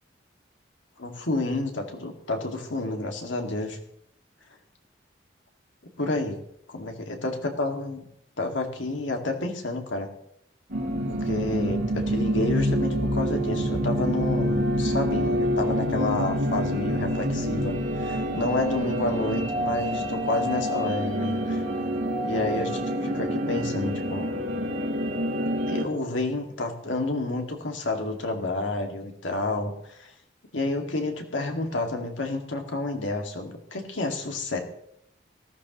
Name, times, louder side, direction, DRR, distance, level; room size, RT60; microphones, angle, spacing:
voice 1, 1.0-3.8 6.0-6.4 6.7-8.1 8.4-10.1 11.1-21.6 22.2-24.3 25.7-30.1 30.5-34.6, left 2 dB, 85° left, 3 dB, 2.2 m, -30 dB
sound 1, 10.7-25.8, equal, 80° right, 2.6 m, -27 dB
19.0 x 14.5 x 3.1 m, 0.71 s
head